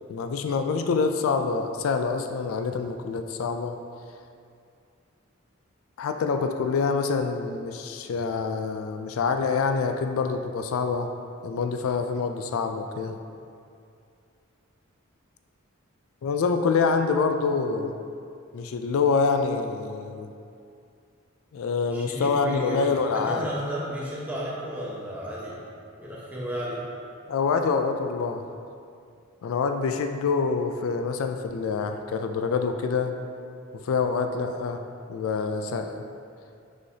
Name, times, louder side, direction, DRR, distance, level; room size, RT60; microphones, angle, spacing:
voice 1, 0.1-3.8 6.0-11.1 11.4-13.2 16.2-17.9 18.5-20.3 21.5-23.5 27.3-28.4 29.4-33.1 33.8-34.8 35.1-36.0, left 5 dB, 75° left, 6 dB, 0.3 m, -26 dB
voice 2, 21.9-25.6 26.0-26.8, equal, 10° right, -7 dB, 1.0 m, -33 dB
6.3 x 5.7 x 2.7 m, 2.4 s
head